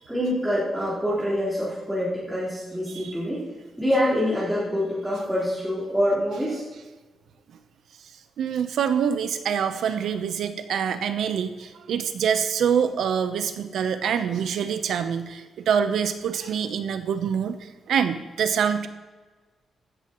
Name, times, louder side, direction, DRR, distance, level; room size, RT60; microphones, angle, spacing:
voice 1, 0.1-3.4 3.8-6.6 10.7-10.8, equal, 5° right, -12 dB, 4.4 m, -25 dB
voice 2, 8.4-18.9, right 7 dB, 70° right, 9 dB, 0.9 m, -25 dB
16.0 x 13.0 x 3.2 m, 1.3 s
wide cardioid pair, 160°, 0 cm